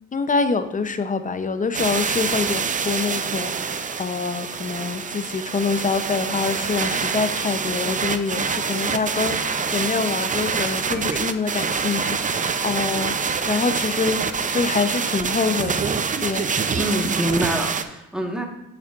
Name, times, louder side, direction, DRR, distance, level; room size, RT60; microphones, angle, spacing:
voice 1, 0.1-13.2 13.5-14.2 14.5-16.5, left 4 dB, 25° left, 9 dB, 0.6 m, -25 dB
sound 1, 1.7-17.8, right 5 dB, 25° right, 0.5 m, -26 dB
voice 2, 16.7-18.4, right 1 dB, 5° right, 1 dB, 1.3 m, -25 dB
8.4 x 7.2 x 2.5 m, 0.91 s
cardioid pair, 90°, 30 cm